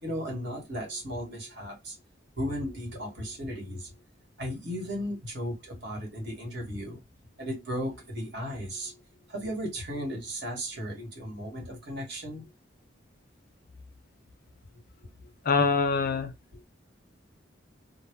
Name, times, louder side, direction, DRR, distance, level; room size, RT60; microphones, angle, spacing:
voice 1, 0.0-1.9 2.4-3.9 4.4-7.0 7.4-9.0 9.3-12.5 15.0-15.3 16.5-16.6, equal, 60° right, 1.2 m, -35 dB
voice 2, 15.4-16.3, left 4 dB, 50° left, 0.4 m, -24 dB
2.1 x 2.0 x 3.3 m
head